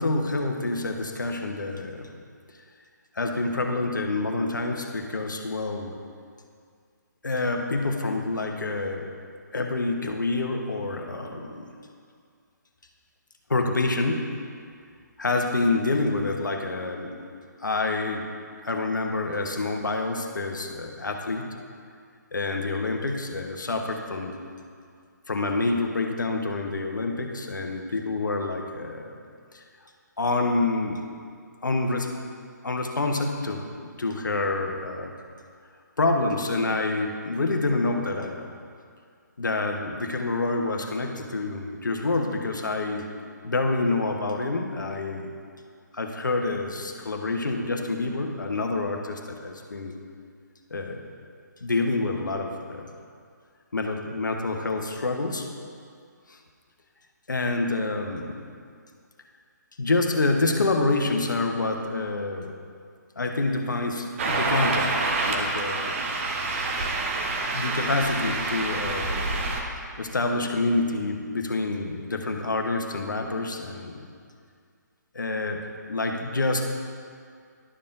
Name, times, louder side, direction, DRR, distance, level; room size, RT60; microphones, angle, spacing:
voice 1, 0.0-2.1 3.1-6.0 7.2-9.1 9.5-11.7 13.5-14.3 15.2-17.2 17.6-18.3 18.6-21.5 22.3-24.4 25.3-29.2 29.5-29.6 30.2-31.0 31.6-32.1 32.6-35.1 36.0-38.5 39.4-43.1 43.4-45.3 45.9-50.0 50.7-51.0 51.6-52.9 53.7-55.5 56.3-56.4 57.3-58.4 59.8-62.5 63.2-64.9 65.3-65.9 66.5-66.6 67.5-69.4 70.0-74.1 75.1-75.6 75.9-76.7, left 2 dB, 75° left, 3 dB, 0.9 m, -27 dB
sound 1, 64.2-69.6, right 3 dB, 40° right, 0.9 m, -27 dB
11.0 x 6.7 x 2.6 m, 2.2 s
figure-of-eight pair, 140°, 10 cm